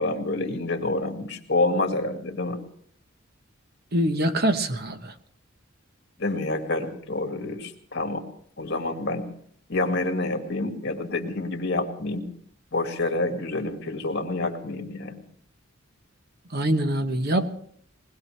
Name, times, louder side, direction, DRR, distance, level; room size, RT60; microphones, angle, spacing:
voice 1, 0.0-2.6 6.2-8.2 8.6-9.3 9.7-12.3 12.7-15.2, left 2 dB, 55° left, 4 dB, 2.3 m, -28 dB
voice 2, 3.9-5.1 16.5-17.6, right 1 dB, 50° right, 8 dB, 1.1 m, -24 dB
22.0 x 19.5 x 3.3 m, 0.62 s
head